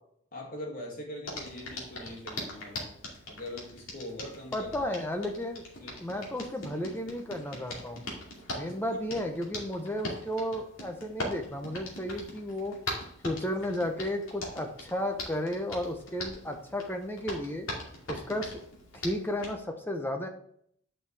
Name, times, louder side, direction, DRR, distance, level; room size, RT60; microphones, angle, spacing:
voice 1, 0.3-2.9 3.3-4.9 5.8-6.0 8.6-9.0, left 1 dB, 40° left, -2 dB, 2.3 m, -42 dB
Hands, 1.2-19.5, left 1 dB, 75° left, 2.3 m, -41 dB
voice 2, 4.5-5.6 6.0-8.0 8.5-12.7 13.2-17.7 18.1-18.5 18.9-20.3, left 1 dB, 10° left, 4 dB, 0.8 m, -33 dB
9.3 x 5.6 x 3.4 m, 0.67 s
head